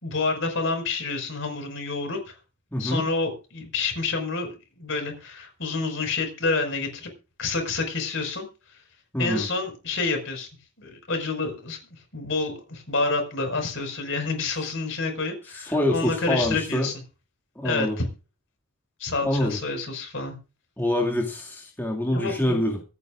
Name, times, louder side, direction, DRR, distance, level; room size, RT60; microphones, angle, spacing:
voice 1, 0.0-2.3 2.8-4.5 4.8-7.1 7.4-8.5 9.2-10.5 10.8-11.8 12.1-16.9 17.6-18.1 19.0-20.4 22.1-22.6, left 3 dB, 60° left, 4 dB, 5.5 m, -28 dB
voice 2, 2.7-3.0 9.1-9.5 15.5-16.9 17.6-18.0 19.2-19.6 20.8-22.8, left 1 dB, 10° left, -1 dB, 2.3 m, -25 dB
25.0 x 9.7 x 2.6 m, 0.31 s
head